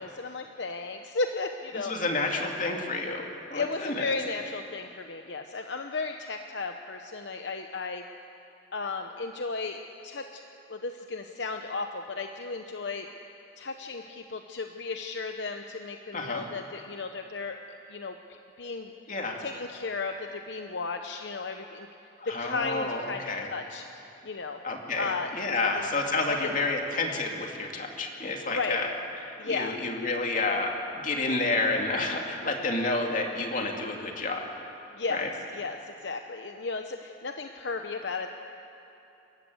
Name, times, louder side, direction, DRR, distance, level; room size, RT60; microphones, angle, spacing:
voice 1, 0.0-1.9 3.5-8.0 8.7-9.8 10.0-10.4 10.7-13.1 13.6-17.6 17.9-18.9 19.4-21.9 22.3-23.2 23.5-23.8 24.2-24.6 25.0-25.3 25.6-25.9 26.4-26.5 28.5-28.8 29.4-29.8 34.9-35.2 35.5-38.3, left 4 dB, 70° left, 5 dB, 0.9 m, -34 dB
voice 2, 1.7-3.2 3.5-4.1 16.1-16.4 19.1-19.4 22.2-23.5 24.6-28.9 29.3-34.4 35.1-35.3, left 3 dB, 45° left, 1 dB, 2.7 m, -30 dB
28.0 x 14.5 x 8.0 m, 3.0 s
head